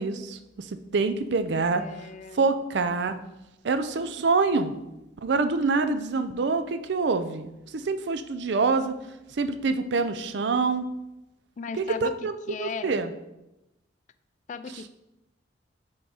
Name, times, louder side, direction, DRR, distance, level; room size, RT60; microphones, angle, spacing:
voice 1, 0.0-1.8 2.3-3.1 3.6-4.8 5.2-8.9 9.3-10.8 11.8-13.1, right 4 dB, 65° right, 9 dB, 0.5 m, -26 dB
voice 2, 1.7-2.5 11.6-12.2 12.5-13.0 14.5-14.9, left 5 dB, 40° left, 13 dB, 0.3 m, -36 dB
5.8 x 4.9 x 4.0 m, 0.93 s
head